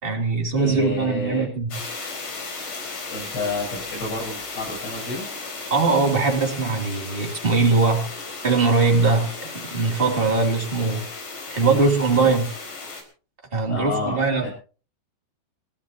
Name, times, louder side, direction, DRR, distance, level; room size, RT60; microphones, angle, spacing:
voice 1, 0.0-1.7 5.7-8.1 8.4-11.0 11.5-12.5 13.5-14.5, right 4 dB, 15° right, 1 dB, 1.9 m, -21 dB
voice 2, 0.6-1.5 3.1-5.3 11.6-11.8 12.1-12.3 13.7-14.5, left 2 dB, 60° left, -5 dB, 10.0 m, -30 dB
sound 1, 1.7-13.0, left 3 dB, 40° left, 5.5 m, -35 dB
29.0 x 13.0 x 2.9 m, 0.37 s
omnidirectional pair, 5.7 m